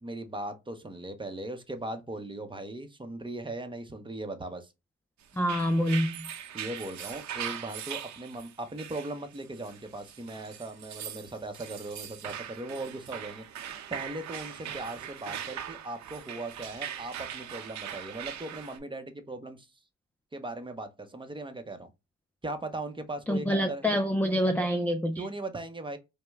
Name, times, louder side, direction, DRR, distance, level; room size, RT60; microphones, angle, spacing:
voice 1, 0.0-4.7 6.5-13.4 13.9-19.7 20.3-21.9 22.4-23.9 25.2-26.0, right 2 dB, 15° right, 0.8 m, -38 dB
sound 1, 5.3-18.8, right 9 dB, 70° right, 0.8 m, -41 dB
voice 2, 5.4-6.3 23.3-25.3, equal, 5° left, 0.4 m, -26 dB
5.1 x 2.2 x 3.5 m
cardioid pair, 90°, 30 cm